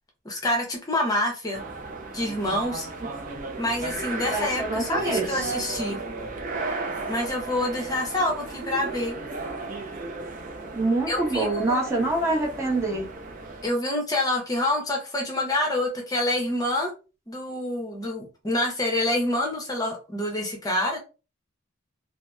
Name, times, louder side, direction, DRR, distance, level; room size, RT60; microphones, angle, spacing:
voice 1, 0.2-1.6 2.1-2.9 3.6-6.0 7.1-9.2 11.1-12.1 13.6-16.9 17.3-21.0, left 1 dB, 20° left, 0.7 m, -27 dB
sound 1, 1.5-13.7, right 3 dB, 45° right, 0.4 m, -35 dB
voice 2, 4.3-5.5 10.7-13.1, right 2 dB, 15° right, 0.9 m, -26 dB
2.7 x 2.0 x 2.2 m
head